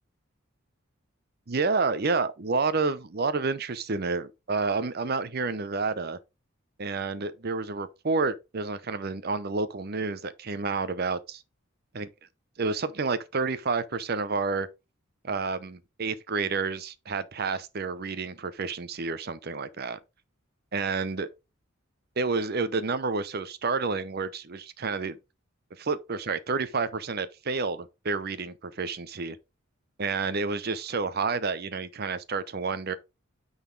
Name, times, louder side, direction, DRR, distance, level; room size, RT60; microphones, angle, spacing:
voice 1, 1.5-6.2 6.8-11.4 11.9-12.1 12.6-14.7 15.2-20.0 20.7-21.3 22.2-25.2 25.8-29.4 30.0-32.9, right 4 dB, 50° right, 0.7 m, -29 dB
9.1 x 4.1 x 3.8 m
head